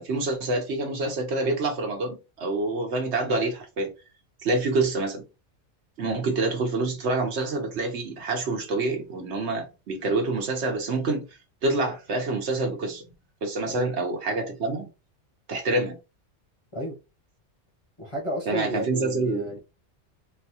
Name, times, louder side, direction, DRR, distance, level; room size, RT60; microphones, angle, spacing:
voice 1, 0.0-3.9 4.4-5.2 6.0-11.3 11.6-13.0 13.4-14.9 15.5-16.0 18.5-19.5, right 2 dB, 65° right, 1.2 m, -27 dB
voice 2, 18.0-19.6, equal, 30° left, 0.8 m, -32 dB
4.0 x 2.3 x 2.8 m
omnidirectional pair, 1.2 m